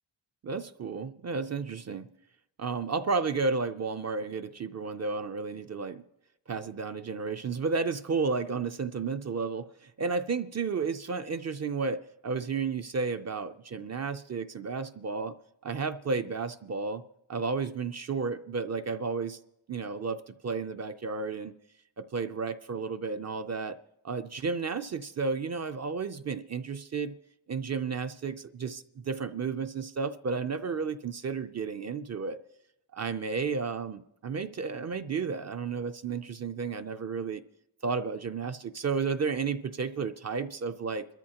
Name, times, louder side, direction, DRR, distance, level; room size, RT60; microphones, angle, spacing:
voice 1, 0.4-2.1 2.6-6.0 6.5-15.4 15.6-17.0 17.3-19.4 19.7-21.6 22.0-23.8 24.0-27.2 27.5-32.4 32.9-37.4 37.8-41.1, right 4 dB, 35° right, 0.4 m, -32 dB
28.0 x 13.5 x 2.9 m
wide cardioid pair, 155°, 46 cm